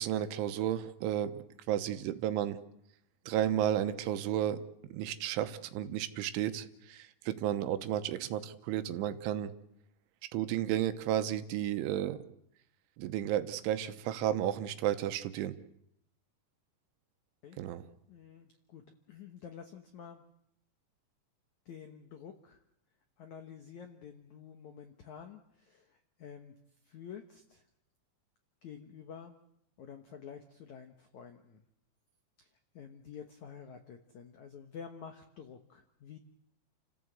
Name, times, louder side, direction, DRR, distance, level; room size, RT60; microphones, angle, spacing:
voice 1, 0.0-1.4 1.7-2.6 3.3-4.6 4.9-9.5 10.3-12.2 13.0-15.6 17.6-17.9, right 11 dB, 85° right, 10 dB, 3.5 m, -32 dB
voice 2, 1.8-2.2 17.4-17.6 18.1-18.8 19.1-20.2 21.6-22.6 23.2-26.5 26.8-27.6 28.6-29.3 29.8-31.6 32.4-32.5 32.7-36.2, left 7 dB, 85° left, 6 dB, 1.6 m, -49 dB
29.5 x 15.0 x 8.0 m, 0.78 s
omnidirectional pair, 5.4 m